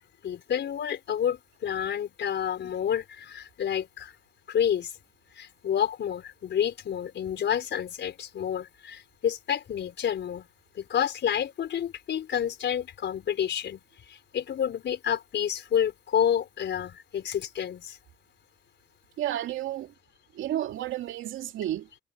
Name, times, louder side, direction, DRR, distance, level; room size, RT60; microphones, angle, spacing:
voice 1, 0.2-4.1 4.5-4.9 5.3-10.5 10.7-13.8 14.1-18.0, left 9 dB, 65° left, 4.7 m, -29 dB
voice 2, 19.2-19.9 20.3-21.9, right 12 dB, 85° right, 2.4 m, -31 dB
cardioid pair, 90°, 20 cm